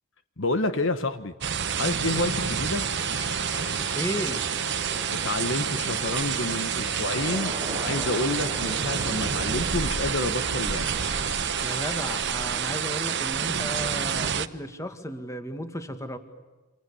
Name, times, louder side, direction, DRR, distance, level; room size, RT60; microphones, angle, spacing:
voice 1, 0.4-1.3 1.6-2.8 5.1-10.9, left 2 dB, 55° left, 10 dB, 1.3 m, -29 dB
sound 1, 1.4-14.5, right 7 dB, 50° right, 1.0 m, -28 dB
sound 2, 2.0-12.3, left 3 dB, 75° left, 5.5 m, -40 dB
voice 2, 3.9-4.4 11.6-16.2, equal, 15° left, 8 dB, 2.0 m, -34 dB
sound 3, 7.1-12.4, right 2 dB, 20° right, 0.8 m, -40 dB
29.0 x 27.0 x 7.1 m, 1.2 s
head